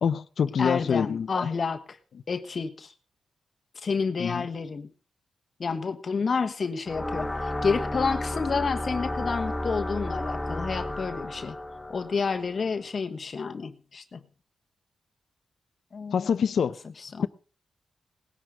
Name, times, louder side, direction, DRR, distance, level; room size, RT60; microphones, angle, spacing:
voice 1, 0.0-1.5 4.2-4.5 16.1-16.8, left 7 dB, 70° left, 0.8 m, -26 dB
voice 2, 0.6-2.0 2.3-2.9 3.7-4.9 5.6-11.6 11.9-14.2 15.9-16.4 17.0-17.3, left 5 dB, 50° left, 1.2 m, -30 dB
sound 1, 6.8-12.9, left 1 dB, 10° left, 1.7 m, -32 dB
19.0 x 10.5 x 5.1 m
cardioid pair, 80°, 0 cm